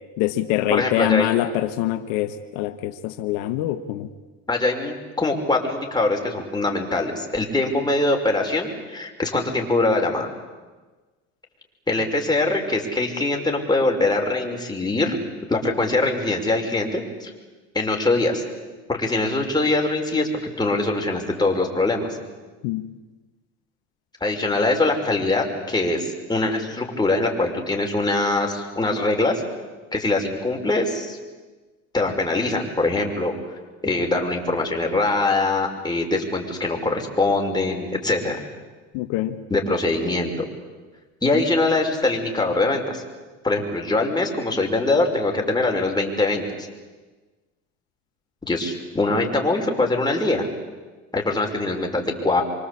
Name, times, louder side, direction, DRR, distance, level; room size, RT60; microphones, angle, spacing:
voice 1, 0.2-4.1 22.6-22.8 38.9-39.4, left 14 dB, 80° left, 8 dB, 1.5 m, -24 dB
voice 2, 0.7-1.3 4.5-10.3 11.9-15.2 15.5-17.3 17.7-18.4 18.9-20.3 20.6-22.1 24.2-29.4 29.9-31.2 31.9-33.3 33.8-38.4 39.5-40.3 41.2-43.0 43.4-46.4 48.4-50.4 51.1-52.4, left 2 dB, 10° left, 1 dB, 5.8 m, -23 dB
27.0 x 24.0 x 8.6 m, 1.3 s
supercardioid pair, 95°, 33 cm